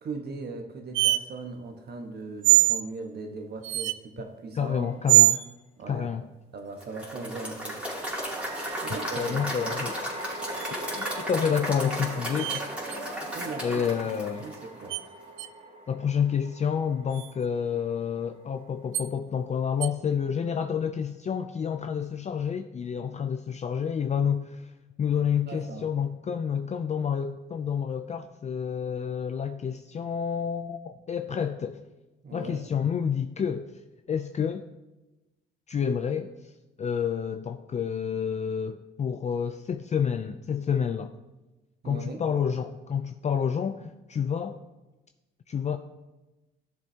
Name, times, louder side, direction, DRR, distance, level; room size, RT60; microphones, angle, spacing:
voice 1, 0.0-4.9 5.8-6.2 6.5-7.8 8.8-9.8 13.3-13.8 14.4-15.0 25.5-25.9 32.2-32.6 41.8-42.2, right 3 dB, 55° right, 4 dB, 1.4 m, -39 dB
sound 1, 0.9-1.2 2.4-2.8 3.6-4.0 5.1-5.5 8.4-8.9 10.5-11.2 12.4-12.6 12.9-13.0 14.9-15.0 15.4-15.5 17.1-17.3 18.9-19.1 19.8-19.9, right 18 dB, 90° right, 0.4 m, -23 dB
voice 2, 4.6-5.4 5.9-6.2 9.2-9.9 11.0-12.6 13.6-14.5 15.9-24.7 25.0-31.8 32.3-33.8 34.1-34.6 35.7-36.5 36.8-41.1 41.8-44.6 45.5-45.8, left 7 dB, 35° left, 7 dB, 0.4 m, -29 dB
sound 2, 4.8-5.0 7.8-19.2, right 1 dB, 35° right, 1.5 m, -43 dB
Applause / Crowd, 6.8-15.0, equal, 5° right, 2.9 m, -35 dB
13.5 x 7.1 x 2.9 m, 1.1 s
cardioid pair, 90°, 20 cm